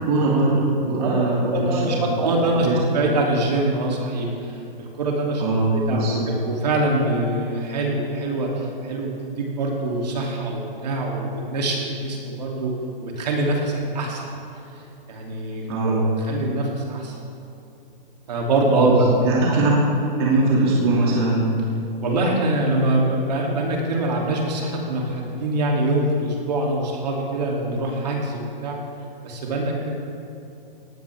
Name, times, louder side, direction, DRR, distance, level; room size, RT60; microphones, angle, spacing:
voice 1, 0.0-2.2 2.6-2.8 5.4-6.3 15.7-16.0 18.8-18.9 19.2-19.8 20.2-21.4, right 2 dB, 25° right, -6 dB, 2.6 m, -21 dB
voice 2, 1.0-2.7 2.9-5.4 5.7-6.0 6.4-12.7 13.0-14.2 15.1-16.0 16.3-17.2 18.3-19.6 22.0-28.8 29.2-29.9, right 2 dB, 45° right, -2 dB, 3.0 m, -24 dB
18.0 x 17.0 x 3.6 m, 2.8 s
hypercardioid pair, 175°, 29 cm